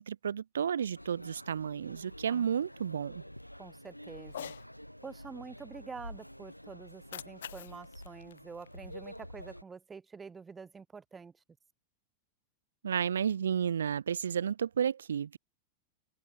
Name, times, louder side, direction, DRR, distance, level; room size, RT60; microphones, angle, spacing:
voice 1, 0.0-3.2 12.8-15.4, right 8 dB, 70° right, 0.5 m, -32 dB
sound 1, 1.0-9.6, equal, 90° left, 0.4 m, -49 dB
voice 2, 3.6-4.5 5.0-11.4, right 5 dB, 15° right, 0.6 m, -47 dB
Cat, 4.2-4.7 6.9-9.2, left 10 dB, 65° left, 1.0 m, -47 dB
open air
figure-of-eight pair, 90°, 0 cm